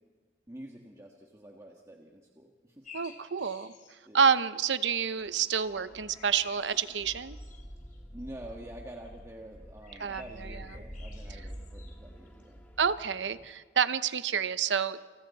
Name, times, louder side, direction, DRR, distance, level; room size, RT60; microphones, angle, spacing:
voice 1, 0.5-2.9 4.0-4.3 8.1-12.6, right 1 dB, 15° right, 0 dB, 1.5 m, -47 dB
sound 1, 2.8-4.5 5.0-5.3 6.1-8.3 8.9-9.2 9.8-12.7 13.1-13.4, left 5 dB, 50° left, 3.4 m, -54 dB
voice 2, 2.9-3.7 4.1-7.4 10.0-10.7 12.8-15.0, right 7 dB, 80° right, 13 dB, 0.8 m, -28 dB
sound 2, 5.2-13.5, equal, 10° left, 1.7 m, -47 dB
29.0 x 27.5 x 4.2 m, 1.5 s
head